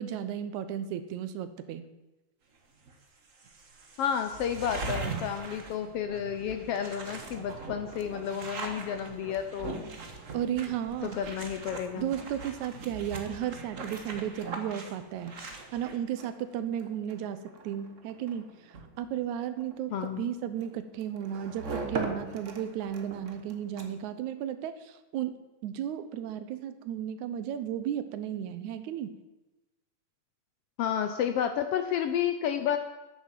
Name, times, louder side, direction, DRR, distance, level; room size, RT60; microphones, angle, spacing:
voice 1, 0.0-1.9 10.3-11.2 11.9-15.3 15.7-29.2, right 10 dB, 80° right, 11 dB, 2.2 m, -34 dB
sound 1, 2.8-2.9 3.3-16.0, right 3 dB, 40° right, 1.1 m, -41 dB
voice 2, 4.0-9.8 11.0-12.1 19.9-20.3 30.8-32.8, left 8 dB, 75° left, 8 dB, 1.4 m, -31 dB
sound 2, 7.7-24.2, right 3 dB, 55° right, 0.8 m, -44 dB
10.5 x 8.8 x 7.5 m, 1.1 s
omnidirectional pair, 3.3 m